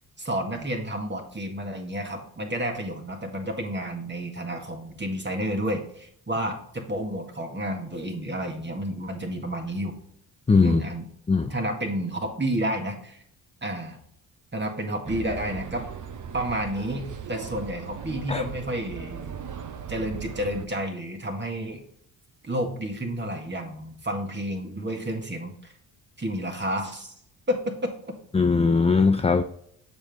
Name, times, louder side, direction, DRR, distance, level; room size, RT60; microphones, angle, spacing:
voice 1, 0.2-10.0 10.6-11.0 11.4-13.2 13.6-14.0 14.5-15.9 16.3-19.4 19.9-21.8 22.4-25.7 26.2-27.1 27.5-27.9, right 1 dB, 25° right, 3 dB, 1.9 m, -30 dB
voice 2, 10.5-10.8 11.3-11.5 18.3-18.4 28.3-29.4, left 4 dB, 15° left, 8 dB, 0.5 m, -20 dB
sound 1, 15.0-20.7, right 7 dB, 40° right, 1.0 m, -38 dB
7.1 x 5.3 x 3.6 m, 0.67 s
supercardioid pair, 50°, 45 cm